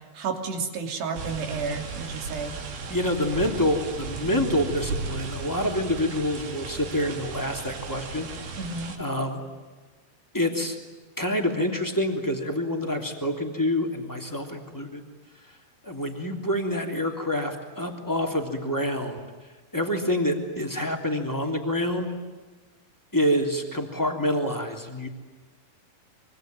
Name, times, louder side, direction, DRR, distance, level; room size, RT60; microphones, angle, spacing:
voice 1, 0.1-2.5 8.6-9.0, right 4 dB, 80° right, 4 dB, 5.1 m, -31 dB
sound 1, 1.1-9.0, right 4 dB, 65° right, 4.6 m, -35 dB
voice 2, 2.9-8.6 9.0-9.4 10.3-10.8 11.2-15.0 15.4-15.6 15.8-19.2 19.7-22.1 23.1-25.1, left 1 dB, 5° left, 3 dB, 2.4 m, -27 dB
26.0 x 24.5 x 9.3 m, 1.3 s
omnidirectional pair, 4.7 m